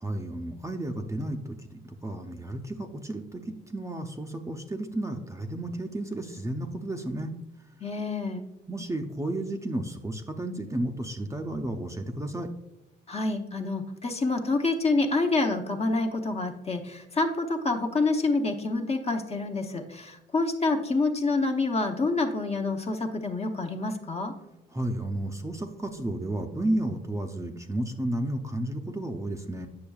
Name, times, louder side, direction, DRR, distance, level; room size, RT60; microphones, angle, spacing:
voice 1, 0.0-7.3 8.7-12.5 24.7-29.7, right 1 dB, 15° right, 4 dB, 0.6 m, -32 dB
voice 2, 7.8-8.4 13.1-24.3, left 3 dB, 30° left, 4 dB, 0.8 m, -27 dB
8.6 x 6.2 x 2.3 m, 0.88 s
cardioid pair, 90°, 20 cm